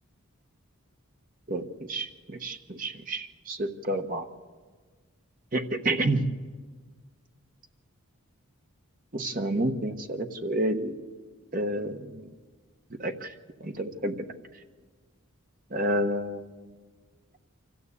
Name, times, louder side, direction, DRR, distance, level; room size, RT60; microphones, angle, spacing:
voice 1, 1.5-4.3 5.5-6.2 9.1-11.0 11.5-12.3 12.9-13.3 13.6-14.3 15.7-16.7, right 1 dB, 40° right, 5 dB, 1.2 m, -30 dB
24.5 x 14.5 x 8.3 m, 1.5 s
head